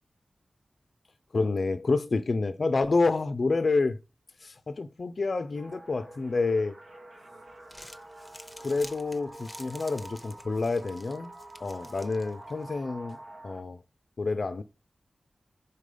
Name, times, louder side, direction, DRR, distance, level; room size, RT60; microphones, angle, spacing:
voice 1, 1.3-4.0 4.4-6.7 8.6-11.3 11.6-13.2 13.4-13.8 14.2-14.6, left 3 dB, 55° left, 0.4 m, -28 dB
sound 1, 5.5-13.6, right 1 dB, 90° right, 1.4 m, -47 dB
Crumpling crinkling, 7.5-12.7, left 1 dB, 10° left, 0.7 m, -50 dB
5.3 x 4.1 x 4.9 m
wide cardioid pair, 100°, 0 cm